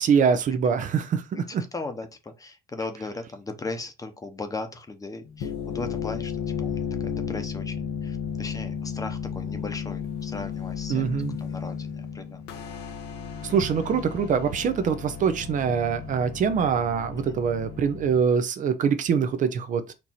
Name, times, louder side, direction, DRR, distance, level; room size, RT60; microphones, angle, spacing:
voice 1, 0.0-1.6 10.9-11.3 13.4-19.9, right 6 dB, 50° right, 0.6 m, -24 dB
voice 2, 1.4-11.1 11.4-12.4 17.3-17.4, left 3 dB, 20° left, 0.9 m, -37 dB
sound 1, 5.3-18.2, left 7 dB, 85° left, 0.9 m, -34 dB
4.5 x 2.7 x 4.2 m
cardioid pair, 110°, 17 cm